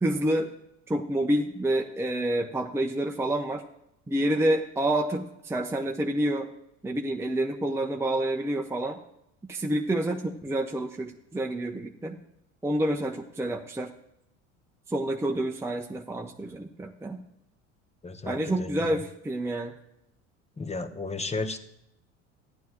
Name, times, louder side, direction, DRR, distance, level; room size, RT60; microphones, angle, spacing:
voice 1, 0.0-0.5 0.9-3.6 4.1-6.5 6.8-9.0 9.5-12.2 12.6-13.9 14.9-17.2 18.3-19.7, right 1 dB, 5° right, 1 dB, 0.8 m, -28 dB
voice 2, 18.0-19.0 20.6-21.6, left 3 dB, 15° left, 10 dB, 1.1 m, -33 dB
14.0 x 9.9 x 3.0 m, 0.81 s
hypercardioid pair, 70°, 38 cm